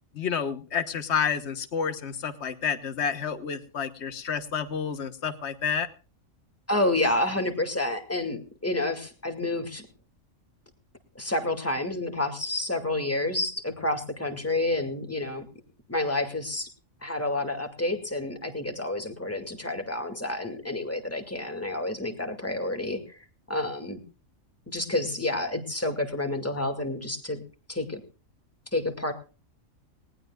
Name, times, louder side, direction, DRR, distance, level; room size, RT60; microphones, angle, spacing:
voice 1, 0.1-5.9, left 7 dB, 55° left, 10 dB, 1.5 m, -29 dB
voice 2, 6.7-9.9 11.2-15.5 15.9-16.7 17.0-23.2 23.5-24.0 24.7-27.4 27.7-28.0 28.7-29.1, left 2 dB, 10° left, 5 dB, 2.3 m, -29 dB
19.5 x 18.5 x 2.4 m, 0.35 s
omnidirectional pair, 1.4 m